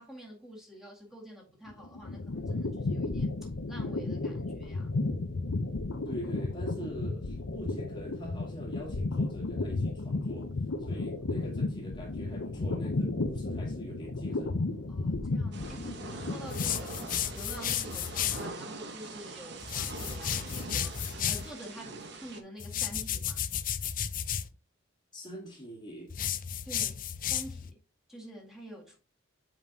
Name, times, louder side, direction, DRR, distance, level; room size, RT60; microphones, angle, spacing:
voice 1, 0.0-3.3 3.7-4.9 10.9-11.1 11.4-11.6 14.9-23.5 26.6-27.8 28.1-29.0, equal, ahead, 1.9 m, -48 dB
sound 1, 1.7-17.1, left 2 dB, 80° left, 0.8 m, -33 dB
voice 2, 6.0-10.5 10.8-14.5 21.7-22.0 25.1-26.1, right 1 dB, 25° left, 1.6 m, -44 dB
Thunder / Rain, 15.5-22.4, right 3 dB, 60° right, 1.1 m, -43 dB
sound 2, 16.5-18.5 19.6-21.5 22.6-24.5 26.1-27.7, left 9 dB, 45° left, 0.5 m, -33 dB
7.4 x 5.4 x 2.9 m
head